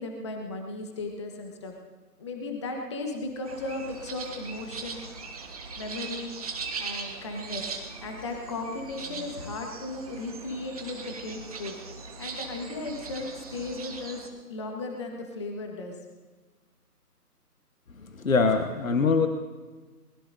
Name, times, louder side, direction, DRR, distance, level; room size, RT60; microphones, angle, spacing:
voice 1, 0.0-1.7 2.2-5.0 5.8-6.3 6.8-7.7 8.0-11.7 12.2-14.2 14.5-16.0, left 2 dB, 20° left, 2 dB, 1.3 m, -36 dB
sound 1, 3.4-14.3, right 4 dB, 25° right, 1.3 m, -40 dB
voice 2, 18.2-19.3, left 4 dB, 55° left, 7 dB, 1.3 m, -22 dB
22.5 x 20.0 x 2.7 m, 1.3 s
figure-of-eight pair, 155°, 47 cm